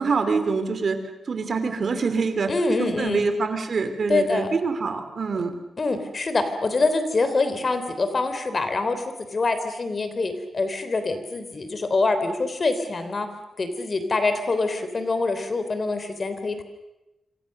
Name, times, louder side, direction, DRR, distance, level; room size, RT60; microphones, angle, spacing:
voice 1, 0.0-5.5, right 4 dB, 55° right, 8 dB, 3.0 m, -25 dB
voice 2, 2.5-3.2 4.1-4.5 5.8-9.0 9.3-13.3 13.6-16.6, left 3 dB, 40° left, 9 dB, 3.5 m, -25 dB
27.5 x 26.5 x 6.7 m, 0.97 s
cardioid pair, 100°, 0 cm